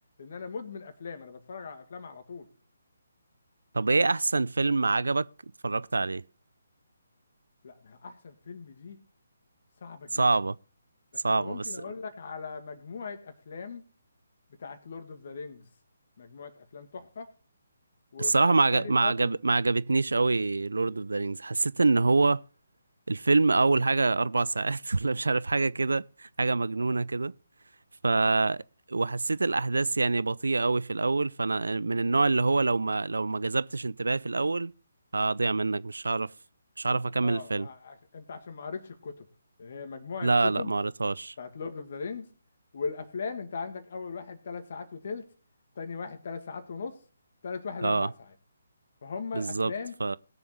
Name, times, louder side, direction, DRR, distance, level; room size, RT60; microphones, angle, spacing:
voice 1, 0.2-2.5 7.6-9.0 9.8-10.2 11.1-13.8 14.6-15.7 16.2-17.3 18.1-19.3 26.9-27.0 37.2-39.3 39.6-40.7 41.4-42.3 42.7-45.3 45.8-47.0 47.4-48.3 49.0-49.9, left 5 dB, 55° left, 2.1 m, -39 dB
voice 2, 3.7-5.3 5.6-6.2 10.1-10.6 11.2-11.8 18.2-22.4 23.1-27.3 28.0-28.6 28.9-34.7 35.1-36.3 36.8-37.7 40.2-41.3 47.8-48.1 49.3-49.7 50.0-50.2, right 3 dB, 75° right, 0.4 m, -26 dB
20.5 x 7.0 x 3.1 m
figure-of-eight pair, 145°, 0 cm